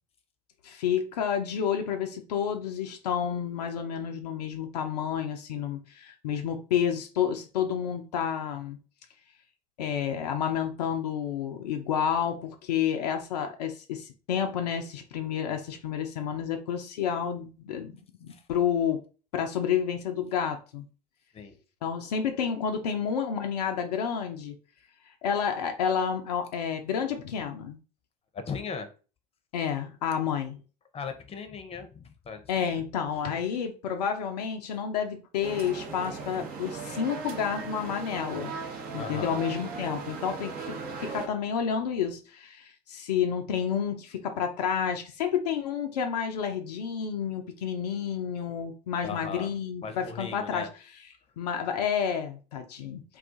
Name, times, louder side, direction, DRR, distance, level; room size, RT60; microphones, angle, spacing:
voice 1, 0.6-8.8 9.8-17.9 18.2-19.0 19.3-20.8 21.8-24.5 25.2-27.8 29.5-30.6 32.5-38.6 38.9-50.7 51.4-53.0, left 8 dB, 75° left, 0.4 m, -30 dB
voice 2, 28.3-28.9 30.9-32.8 39.0-39.4 49.0-49.5 49.8-50.7, left 5 dB, 30° left, 0.6 m, -38 dB
sound 1, 35.4-41.3, right 5 dB, 50° right, 0.7 m, -38 dB
2.3 x 2.3 x 3.7 m
figure-of-eight pair, 60°, 21 cm